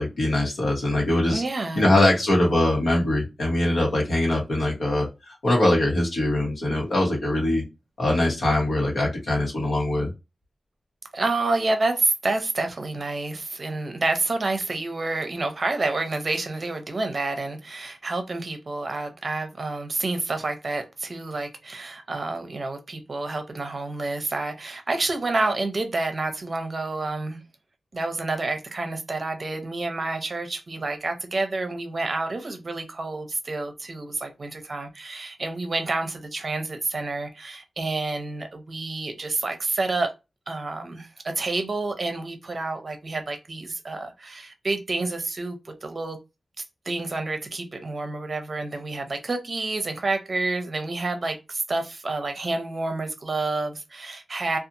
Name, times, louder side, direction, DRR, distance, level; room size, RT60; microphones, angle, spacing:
voice 1, 0.0-1.4 1.7-7.6 8.0-10.1, left 1 dB, 80° left, 1.1 m, -22 dB
voice 2, 1.3-2.0 11.1-27.4 27.9-40.1 40.5-46.2 46.6-54.6, right 3 dB, 45° right, 0.6 m, -29 dB
2.7 x 2.3 x 2.6 m
wide cardioid pair, 125°, 0 cm